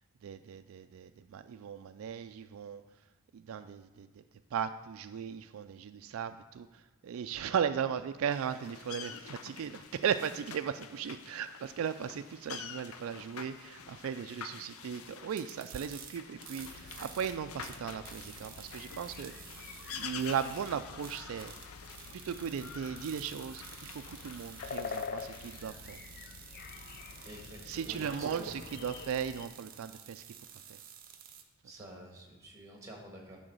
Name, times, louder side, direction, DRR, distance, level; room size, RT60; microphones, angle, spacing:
voice 1, 0.2-2.8 3.3-4.2 4.5-19.5 19.9-21.5 22.1-26.0 27.7-30.2 30.7-30.8, right 7 dB, 75° right, 10 dB, 0.3 m, -37 dB
sound 1, 8.3-25.6, left 7 dB, 80° left, 0.6 m, -48 dB
sound 2, 15.3-31.4, right 8 dB, 40° right, 0.7 m, -51 dB
sound 3, 16.6-29.5, left 5 dB, 45° left, 0.3 m, -47 dB
voice 2, 27.2-28.5 31.6-33.4, right 1 dB, 15° right, 0 dB, 1.5 m, -49 dB
9.9 x 3.9 x 6.6 m, 1.2 s
head